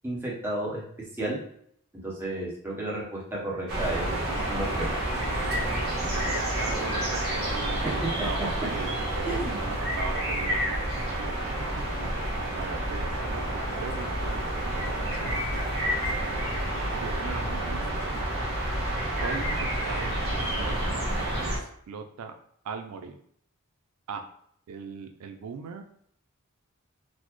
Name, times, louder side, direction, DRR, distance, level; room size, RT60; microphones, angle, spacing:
voice 1, 0.0-0.8 1.2-1.4 2.0-4.9 9.3-9.6, right 1 dB, 10° right, -6 dB, 0.9 m, -32 dB
sound 1, 3.7-21.6, right 1 dB, 45° right, 1.2 m, -29 dB
voice 2, 6.3-11.7 12.5-15.5 16.1-16.5 16.9-18.2 19.2-20.8 21.4-22.3 22.6-23.2 24.1-24.3 24.7-25.8, right 5 dB, 90° right, 5 dB, 0.4 m, -39 dB
4.0 x 2.0 x 3.0 m, 0.67 s
head